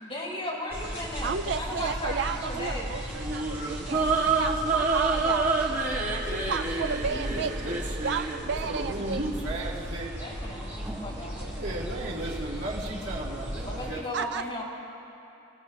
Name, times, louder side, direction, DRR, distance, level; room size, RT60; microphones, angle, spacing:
voice 1, 0.0-3.0 10.2-12.2 13.6-14.6, left 1 dB, 30° left, -7 dB, 4.4 m, -36 dB
sound 1, 0.7-13.9, equal, 10° right, 3.0 m, -36 dB
voice 2, 1.2-9.2 14.1-14.4, right 6 dB, 60° right, 8 dB, 0.4 m, -33 dB
sound 2, 3.1-8.4, right 3 dB, 40° right, 1.7 m, -28 dB
voice 3, 7.1-7.8 8.6-10.1 11.5-14.1, right 1 dB, 80° right, -6 dB, 2.7 m, -35 dB
28.0 x 17.0 x 2.8 m, 2.9 s
head